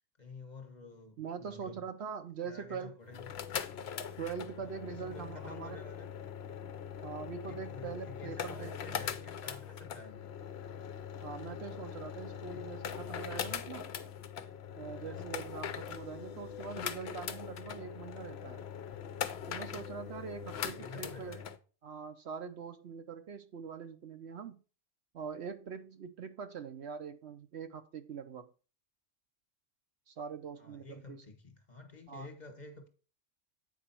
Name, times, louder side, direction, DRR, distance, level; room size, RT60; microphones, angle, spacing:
voice 1, 0.2-1.8 2.4-3.3 4.6-6.1 7.5-10.3 12.4-12.7 14.8-15.2 20.5-21.5 30.6-32.9, left 3 dB, 35° left, 1.3 m, -50 dB
voice 2, 1.2-2.9 4.2-5.8 7.0-9.0 11.2-13.9 14.7-18.6 19.5-21.4 21.8-24.6 25.1-28.5 30.1-31.2 32.1-32.3, right 6 dB, 65° right, 0.9 m, -43 dB
sound 1, 3.0-21.6, left 8 dB, 60° left, 0.8 m, -41 dB
8.1 x 5.0 x 4.4 m
omnidirectional pair, 1.3 m